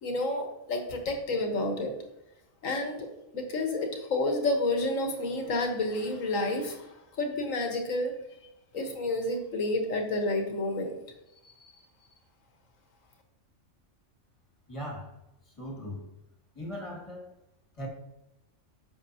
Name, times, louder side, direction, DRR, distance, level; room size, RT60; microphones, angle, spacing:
voice 1, 0.0-1.9 2.6-3.1 3.3-8.1 8.7-11.0 11.4-11.5, left 2 dB, 85° left, 4 dB, 1.7 m, -30 dB
voice 2, 14.7-15.2 15.5-16.1 16.5-17.3 17.8-17.9, equal, 25° left, -2 dB, 2.2 m, -39 dB
10.5 x 7.1 x 2.9 m, 0.88 s
omnidirectional pair, 1.3 m